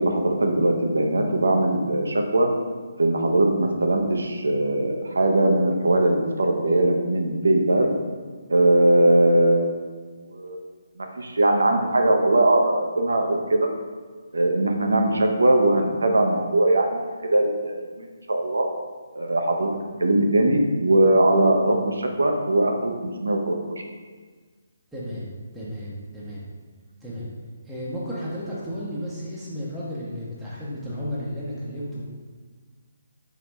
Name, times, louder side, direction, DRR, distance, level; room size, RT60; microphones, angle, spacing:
voice 1, 0.0-2.5 3.0-7.9 8.5-9.9 10.3-10.6 11.0-13.7 14.3-18.7 19.1-19.7 20.0-22.9 23.2-23.8, right 1 dB, 75° right, 3 dB, 0.6 m, -20 dB
voice 2, 24.9-26.5 27.0-27.3 27.6-32.0, equal, 5° right, -10 dB, 0.8 m, -33 dB
4.6 x 2.9 x 3.3 m, 1.5 s
figure-of-eight pair, 145°, 0 cm